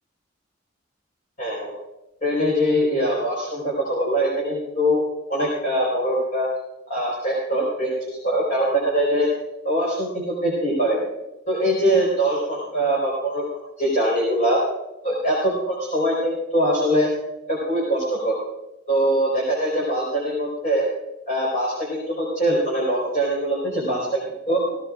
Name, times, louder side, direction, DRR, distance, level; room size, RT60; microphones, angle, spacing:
voice 1, 1.4-1.7 2.2-5.0 5.3-6.5 6.9-9.3 9.6-11.0 11.5-13.4 13.8-14.6 15.0-17.1 17.5-18.4 18.9-20.9 21.3-24.2 24.5-24.6, right 1 dB, 45° left, -5 dB, 4.4 m, -22 dB
17.0 x 17.0 x 2.5 m, 0.93 s
head